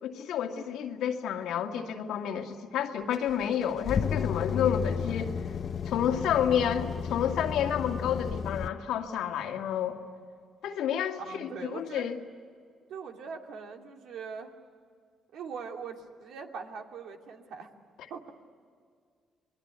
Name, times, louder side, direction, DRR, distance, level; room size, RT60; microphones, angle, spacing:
voice 1, 0.0-5.3 5.9-10.0 10.6-12.2, left 9 dB, 85° left, 3 dB, 2.1 m, -30 dB
sound 1, 3.1-8.7, left 6 dB, 50° left, 1.0 m, -33 dB
voice 2, 11.2-12.1 12.9-14.5 15.3-17.7 18.1-18.3, right 6 dB, 80° right, 3 dB, 2.7 m, -41 dB
28.0 x 21.5 x 9.5 m, 2.1 s
cardioid pair, 90°, 0 cm